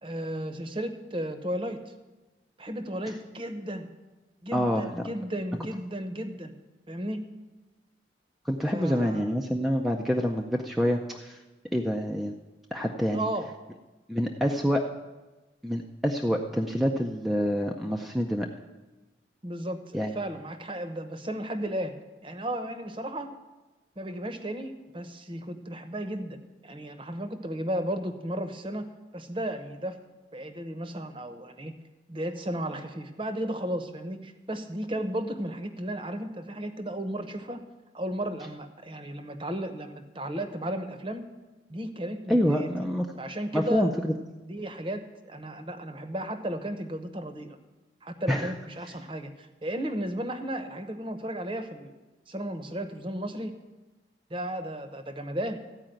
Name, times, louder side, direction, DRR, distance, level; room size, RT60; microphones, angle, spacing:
voice 1, 0.0-1.9 2.6-3.9 4.4-6.5 6.9-7.2 8.7-9.3 13.1-13.5 19.4-21.9 22.2-23.3 24.0-26.4 26.6-28.9 29.1-30.0 30.3-31.7 32.1-37.6 37.9-41.3 41.7-42.7 43.2-43.9 44.4-47.6 48.0-51.9 52.3-53.5 54.3-55.6, right 1 dB, 30° right, 7 dB, 0.8 m, -34 dB
voice 2, 4.5-4.9 8.5-11.4 11.7-12.3 12.7-13.3 14.1-14.8 15.6-18.5 19.9-20.1 42.3-43.1 43.5-44.1 48.3-48.5, equal, ahead, 1 dB, 0.4 m, -26 dB
14.5 x 4.9 x 9.0 m, 1.2 s
head